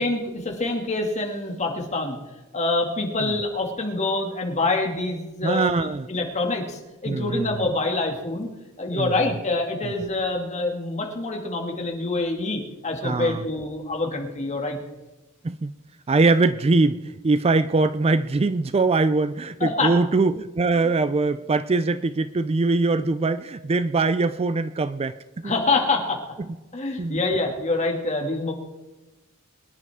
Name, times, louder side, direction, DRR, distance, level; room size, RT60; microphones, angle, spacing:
voice 1, 0.0-2.2 2.5-8.5 8.8-14.8 19.6-19.9 25.4-26.2 26.7-28.5, left 2 dB, 30° left, 1 dB, 2.2 m, -26 dB
voice 2, 5.4-6.1 7.1-7.6 8.9-9.3 9.8-9.9 13.0-13.4 15.4-15.7 16.1-25.5 26.4-26.5 27.0-27.2, right 3 dB, 25° right, 13 dB, 0.4 m, -22 dB
24.0 x 10.5 x 3.6 m, 1.1 s
head